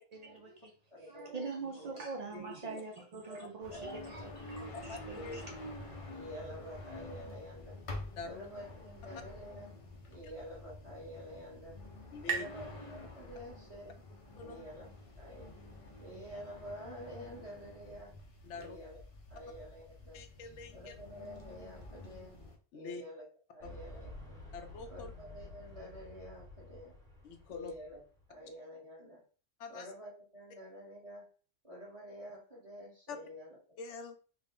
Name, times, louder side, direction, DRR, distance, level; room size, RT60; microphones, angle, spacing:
voice 1, 0.1-0.7 1.1-5.4, right 4 dB, 75° right, 0.3 m, -44 dB
voice 2, 0.9-1.5 1.8-2.1 3.2-3.4 3.7-4.3 6.1-7.8 8.2-9.7 10.1-11.8 12.3-14.0 14.4-14.9 15.2-15.6 16.0-18.1 18.5-19.0 19.3-20.2 20.7-22.4 22.7-24.4 24.9-26.9 27.5-28.0 28.3-29.2 29.7-31.3 31.6-33.6, equal, 30° right, 1.2 m, -49 dB
sound 1, 3.6-22.6, left 2 dB, 35° left, 0.5 m, -49 dB
voice 3, 4.7-5.4 8.2-8.5 12.1-12.5 14.4-14.6 18.4-18.8 20.1-20.9 22.7-23.0 23.6-23.8 24.5-25.1 27.2-27.7 29.6-29.9 33.1-33.2 33.8-34.2, left 4 dB, 70° left, 0.9 m, -45 dB
sound 2, 10.8-14.2, right 6 dB, 55° right, 0.7 m, -43 dB
sound 3, 23.6-28.4, left 2 dB, 5° left, 0.8 m, -51 dB
3.6 x 2.1 x 3.6 m
omnidirectional pair, 1.3 m